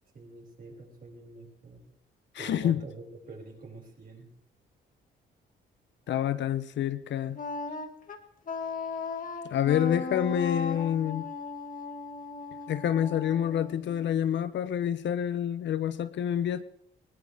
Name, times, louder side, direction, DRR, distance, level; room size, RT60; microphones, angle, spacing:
voice 1, 0.1-1.9 2.4-4.3, right 3 dB, 45° right, 6.1 m, -46 dB
voice 2, 2.3-2.8 6.1-7.4 9.4-11.3 12.7-16.6, left 10 dB, 65° left, 0.9 m, -28 dB
Wind instrument woodwind instrument, 7.3-14.3, left 4 dB, 45° left, 1.9 m, -37 dB
20.0 x 19.0 x 3.5 m
cardioid pair, 90°, 20 cm